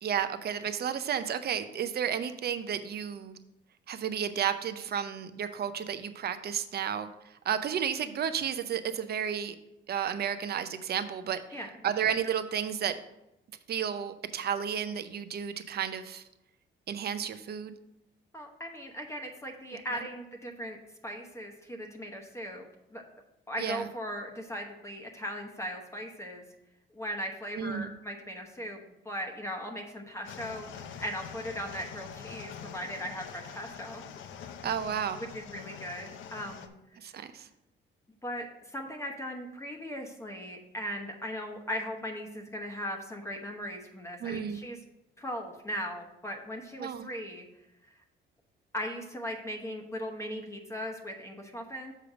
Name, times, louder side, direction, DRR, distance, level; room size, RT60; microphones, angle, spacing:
voice 1, 0.0-3.4 3.9-7.1 7.4-9.6 9.9-12.9 13.7-16.2 16.9-17.7 19.9-20.0 23.6-23.9 27.5-27.9 34.6-35.2 37.0-37.5 44.2-44.6 46.8-47.1, right 8 dB, 55° right, 11 dB, 0.6 m, -32 dB
voice 2, 18.3-23.0 23.5-26.4 26.9-28.8 29.0-34.0 35.3-36.7 38.2-44.8 45.2-47.5 48.7-51.9, equal, 15° left, 2 dB, 1.0 m, -38 dB
sound 1, 30.2-36.7, left 8 dB, 75° left, 0.6 m, -45 dB
6.6 x 5.0 x 4.9 m, 0.89 s
cardioid pair, 90°, 20 cm